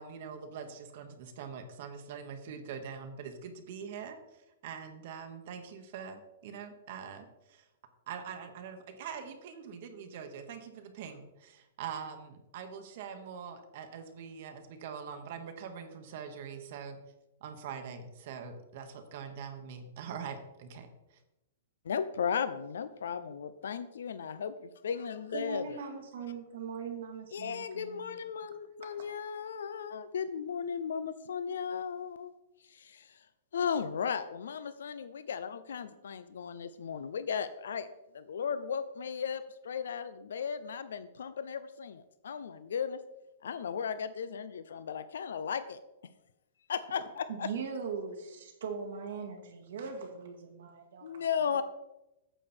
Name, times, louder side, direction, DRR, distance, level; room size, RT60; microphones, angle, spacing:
voice 1, 0.0-4.2 4.6-7.6 8.1-17.0 17.4-20.9, right 7 dB, 50° right, 6 dB, 1.2 m, -43 dB
voice 2, 21.8-25.6 27.3-32.3 32.7-33.2 33.5-43.0 43.4-45.8 46.7-47.5 51.0-51.6, left 7 dB, 85° left, 13 dB, 0.5 m, -36 dB
voice 3, 25.3-28.2 28.8-29.1 47.4-51.3, right 5 dB, 75° right, 3 dB, 1.7 m, -40 dB
9.0 x 6.5 x 4.4 m, 0.93 s
hypercardioid pair, 155°, 0 cm